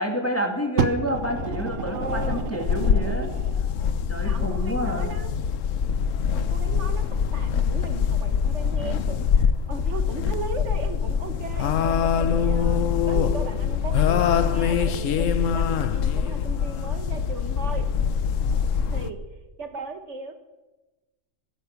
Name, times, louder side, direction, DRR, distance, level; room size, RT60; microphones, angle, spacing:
voice 1, 0.0-3.3 4.1-5.1, equal, 10° left, 2 dB, 2.4 m, -28 dB
Fire, 0.8-3.6 4.4-4.5, right 6 dB, 85° right, 1.3 m, -30 dB
sound 1, 1.1-19.1, left 7 dB, 85° left, 1.2 m, -24 dB
voice 2, 1.9-2.4 4.2-5.3 6.3-7.1 7.3-17.9 18.9-20.3, right 3 dB, 65° right, 8 dB, 1.6 m, -37 dB
22.5 x 10.0 x 5.9 m, 1.1 s
omnidirectional pair, 1.3 m